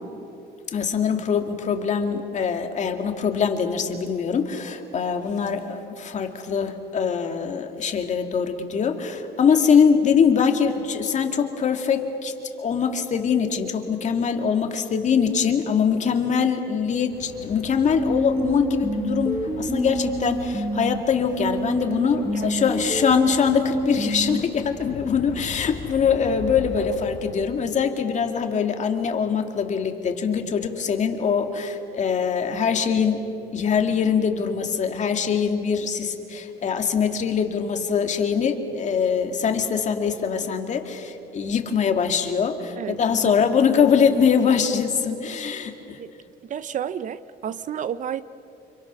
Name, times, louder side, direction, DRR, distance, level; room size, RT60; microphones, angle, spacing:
voice 1, 0.7-33.2 33.5-46.0, left 6 dB, 45° left, 5 dB, 2.3 m, -23 dB
sound 1, 17.1-27.5, left 4 dB, 80° left, 3.9 m, -40 dB
sound 2, 18.0-21.0 21.4-24.4, right 1 dB, 15° right, 1.1 m, -27 dB
voice 2, 22.2-22.5 22.8-23.0 42.8-43.3 46.0-46.1 46.5-48.2, right 9 dB, 50° right, 15 dB, 0.7 m, -31 dB
30.0 x 25.5 x 6.3 m, 2.8 s
cardioid pair, 110°, 17 cm